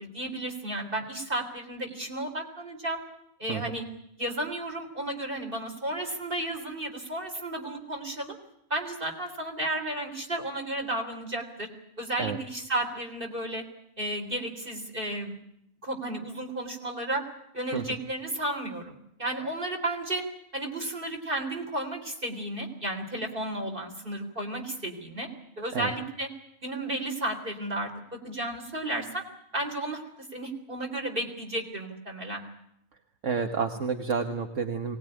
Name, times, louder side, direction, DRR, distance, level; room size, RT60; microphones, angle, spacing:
voice 1, 0.0-3.0 3.4-3.9 4.2-8.4 8.7-11.7 12.0-13.6 14.0-15.3 15.8-17.2 17.5-18.9 19.2-20.2 20.5-25.3 25.6-26.3 26.6-29.2 29.5-32.4, right 1 dB, 40° right, 2 dB, 3.8 m, -33 dB
voice 2, 33.2-35.0, right 5 dB, 60° right, 5 dB, 1.7 m, -29 dB
23.5 x 18.5 x 9.8 m, 0.76 s
omnidirectional pair, 1.5 m